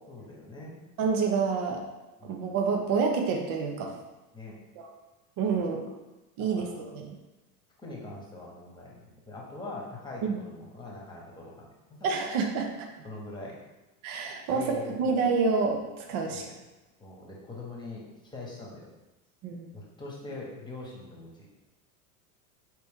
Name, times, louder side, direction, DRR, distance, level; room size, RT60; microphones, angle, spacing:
voice 1, 0.1-0.8 2.2-2.4 4.3-4.6 5.6-5.7 6.6-6.8 7.8-11.7 12.0-12.1 13.0-13.6 14.5-15.0 16.3-16.5 17.0-18.0 18.3-18.9 19.7-21.5, left 2 dB, 10° left, -3 dB, 1.2 m, -42 dB
voice 2, 1.0-1.8 2.2-3.9 4.8-4.9 5.4-5.8 6.4-7.2 10.2-10.4 12.0-12.9 14.0-16.4 19.4-19.7, right 5 dB, 50° right, 2 dB, 0.7 m, -28 dB
4.2 x 3.0 x 3.5 m, 1.1 s
hypercardioid pair, 95°, 45 cm